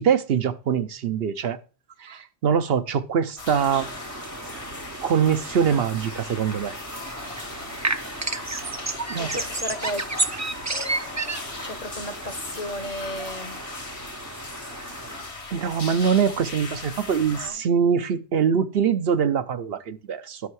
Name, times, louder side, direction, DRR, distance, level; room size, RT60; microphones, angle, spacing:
voice 1, 0.0-1.6 2.0-3.9 5.0-6.7 9.1-9.3 15.5-20.4, right 7 dB, 65° right, 0.9 m, -23 dB
sound 1, 3.4-17.5, left 3 dB, 75° left, 2.0 m, -38 dB
sound 2, 3.6-15.3, right 3 dB, 20° right, 0.5 m, -33 dB
voice 2, 8.9-10.1 11.6-13.6 17.3-17.5, left 1 dB, 40° left, 0.8 m, -34 dB
11.5 x 5.5 x 4.7 m
omnidirectional pair, 1.1 m